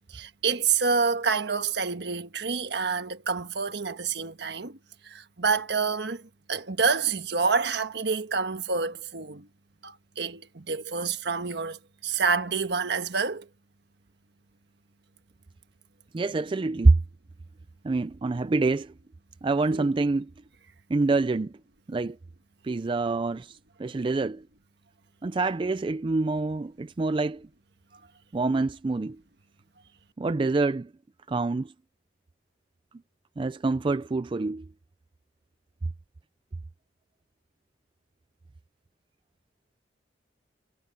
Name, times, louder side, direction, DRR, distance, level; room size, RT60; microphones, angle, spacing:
voice 1, 0.1-4.8 5.0-9.5 9.8-13.5 19.7-19.9, right 5 dB, 65° right, 1.4 m, -28 dB
voice 2, 16.1-17.0 17.8-18.9 19.4-20.3 20.9-21.5 21.9-22.2 22.6-24.4 25.2-27.5 28.3-29.2 30.2-30.9 31.3-31.7 33.4-34.7, right 3 dB, 25° right, 0.4 m, -26 dB
head